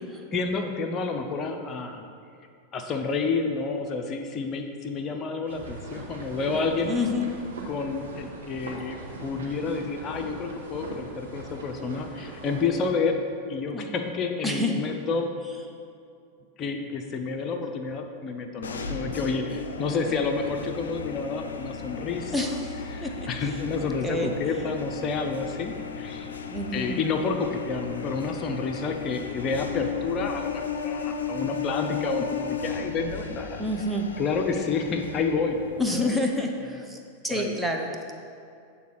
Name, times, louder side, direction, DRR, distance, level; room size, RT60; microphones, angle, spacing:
voice 1, 0.0-2.0 2.7-6.9 7.7-13.2 13.5-15.4 16.6-22.6 22.9-26.3 26.7-33.6 34.2-35.6 35.9-36.2 36.6-36.8 37.3-37.6, left 4 dB, 30° left, 5 dB, 0.7 m, -29 dB
sound 1, 5.5-12.9, right 2 dB, 65° right, 1.2 m, -40 dB
voice 2, 6.8-7.3 13.7-13.9 14.4-14.7 22.3-22.7 23.0-23.3 23.8-24.3 26.5-27.0 33.6-34.1 35.8-37.9, left 1 dB, 5° right, 1 dB, 0.8 m, -28 dB
sound 2, 18.6-36.0, left 6 dB, 70° left, 0.5 m, -35 dB
8.5 x 3.9 x 6.1 m, 2.4 s
figure-of-eight pair, 90°, 0 cm